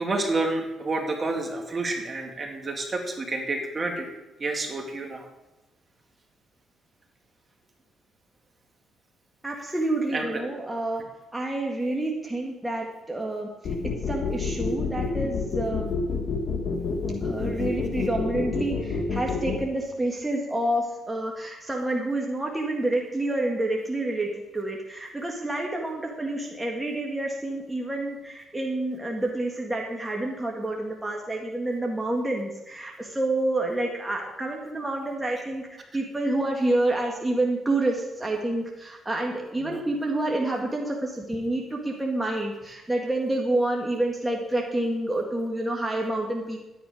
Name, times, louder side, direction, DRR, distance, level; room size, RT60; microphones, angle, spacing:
voice 1, 0.0-4.1 4.4-5.3 10.1-10.4 39.6-39.8, right 2 dB, 35° right, 2 dB, 2.3 m, -29 dB
voice 2, 9.4-11.0 11.3-13.5 14.1-16.0 17.2-24.3 24.5-35.7 35.9-46.6, right 1 dB, 10° right, 0 dB, 1.9 m, -28 dB
sound 1, 13.6-19.6, left 5 dB, 60° left, 1.9 m, -28 dB
11.5 x 9.6 x 5.1 m, 1.0 s
cardioid pair, 90°, 0 cm